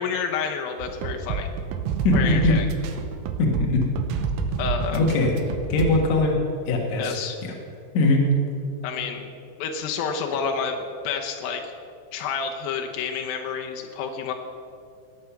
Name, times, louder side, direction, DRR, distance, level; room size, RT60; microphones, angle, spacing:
voice 1, 0.0-1.5 2.1-2.7 4.6-5.0 7.0-7.4 8.8-9.3 9.6-10.8 11.0-11.7 12.1-14.3, left 6 dB, 90° left, 3 dB, 2.0 m, -29 dB
sound 1, 0.8-6.1, right 6 dB, 85° right, 3.3 m, -28 dB
voice 2, 2.0-2.5 3.4-3.8 4.9-5.3 5.7-6.4 6.7-7.5 7.9-8.3, left 2 dB, 70° left, 0 dB, 1.7 m, -21 dB
19.0 x 8.8 x 5.9 m, 2.6 s
omnidirectional pair, 5.5 m